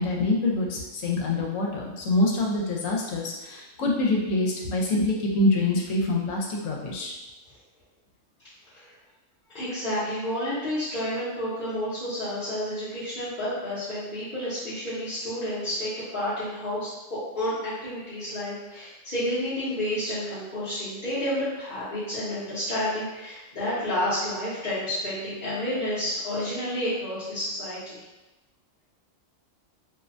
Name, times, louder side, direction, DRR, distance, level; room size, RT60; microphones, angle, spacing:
voice 1, 0.0-7.1, left 2 dB, 85° left, -1 dB, 1.0 m, -25 dB
voice 2, 9.5-28.0, left 1 dB, 45° left, -13 dB, 0.8 m, -30 dB
2.5 x 2.1 x 2.5 m, 1.0 s
omnidirectional pair, 1.3 m